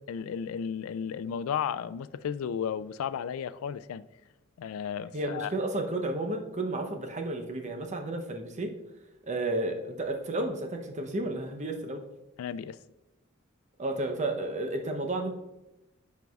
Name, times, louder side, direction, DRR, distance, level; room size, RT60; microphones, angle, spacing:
voice 1, 0.1-4.0 4.6-5.5 12.4-12.8, left 7 dB, 90° left, 0.3 m, -34 dB
voice 2, 5.1-8.7 9.3-12.0 13.8-15.3, right 2 dB, 35° right, 0.7 m, -32 dB
9.1 x 4.6 x 2.3 m
head